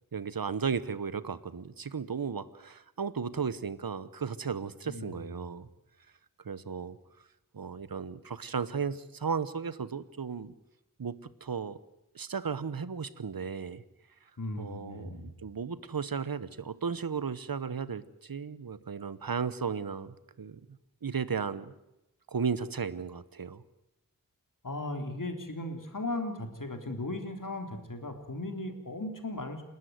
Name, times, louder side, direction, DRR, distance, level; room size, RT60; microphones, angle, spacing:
voice 1, 0.1-5.7 6.4-7.0 7.5-10.5 11.0-11.8 12.1-13.8 14.6-20.6 21.0-21.7 22.3-23.6, right 6 dB, 85° right, 15 dB, 1.1 m, -35 dB
voice 2, 4.9-5.3 14.4-15.3 24.6-29.6, left 2 dB, 65° left, 5 dB, 3.6 m, -37 dB
29.0 x 12.5 x 9.5 m, 0.93 s
wide cardioid pair, 60°, 34 cm